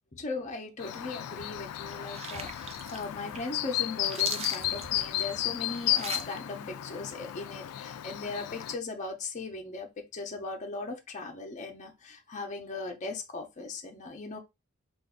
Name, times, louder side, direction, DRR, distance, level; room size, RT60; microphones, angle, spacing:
voice 1, 0.1-14.4, left 3 dB, 35° left, 0.6 m, -38 dB
Chirp tweet, 0.8-8.8, left 13 dB, 90° left, 0.3 m, -33 dB
sound 1, 1.4-6.3, right 5 dB, 30° right, 0.4 m, -42 dB
2.5 x 2.4 x 3.6 m
head